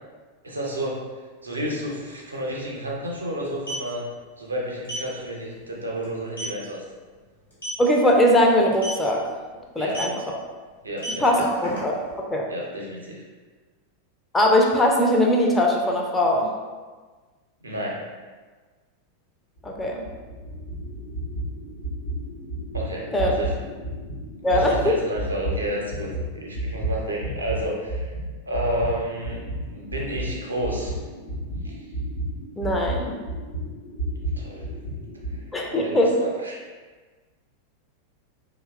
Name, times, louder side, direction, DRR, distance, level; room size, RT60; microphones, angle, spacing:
voice 1, 0.4-1.0 1.4-4.0 4.4-6.8 9.8-10.0 10.8-11.4 12.5-13.2 17.6-18.1 22.7-23.6 24.5-28.1 28.5-31.0 31.6-31.8 34.4-34.7 35.3-36.6, right 1 dB, 80° right, -2 dB, 0.5 m, -31 dB
sound 1, 1.8-1.9 2.2-2.4 3.4-3.9 4.8-5.1 5.5-5.7 6.0-6.1 6.4-6.6 7.5-7.9 8.7-9.0 9.9-10.2 10.8-12.1, right 1 dB, 80° left, 1.0 m, -32 dB
voice 2, 7.8-9.2 9.8-10.1 11.2-12.0 12.3-12.4 14.3-16.5 19.6-20.1 23.1-23.3 24.4-25.0 32.6-33.2 35.5-36.1, left 1 dB, 10° left, -1 dB, 0.3 m, -20 dB
sound 2, 19.6-27.6 27.9-35.4, right 1 dB, 65° left, 0.5 m, -32 dB
2.7 x 2.0 x 2.3 m, 1.4 s
figure-of-eight pair, 90°, 0 cm